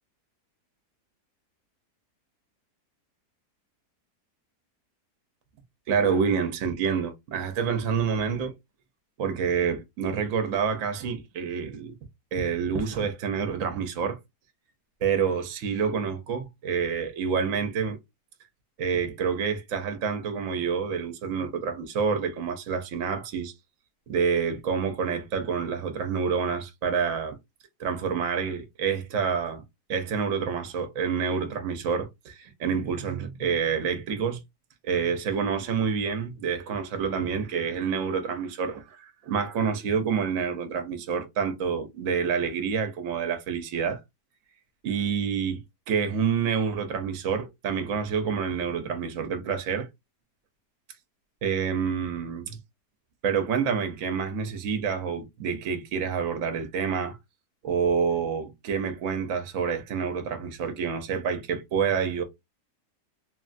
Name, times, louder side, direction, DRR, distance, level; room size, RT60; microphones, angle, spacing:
voice 1, 5.9-8.5 9.2-12.0 12.3-14.2 15.0-18.0 18.8-23.5 24.1-27.4 27.8-29.6 29.9-34.4 34.8-44.0 44.8-49.9 51.4-52.6 53.2-57.2 57.6-62.2, right 6 dB, 60° right, 0.9 m, -28 dB
3.1 x 2.3 x 2.5 m
omnidirectional pair, 1.7 m